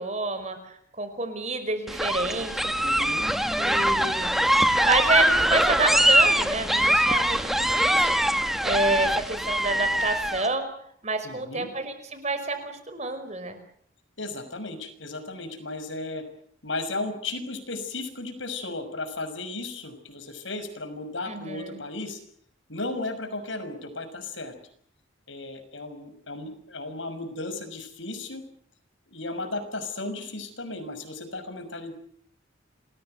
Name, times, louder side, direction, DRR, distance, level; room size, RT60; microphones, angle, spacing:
voice 1, 0.0-2.7 3.6-4.4 4.8-10.7 11.0-13.6 21.3-21.8, right 3 dB, 35° right, 9 dB, 5.3 m, -29 dB
sound 1, 1.9-10.5, equal, ahead, 1.7 m, -23 dB
voice 2, 2.8-3.2 11.2-11.7 14.2-16.2 16.6-22.2 22.7-24.5 25.3-28.4 29.1-31.9, left 2 dB, 75° left, 9 dB, 6.0 m, -35 dB
28.5 x 21.0 x 7.9 m, 0.65 s
head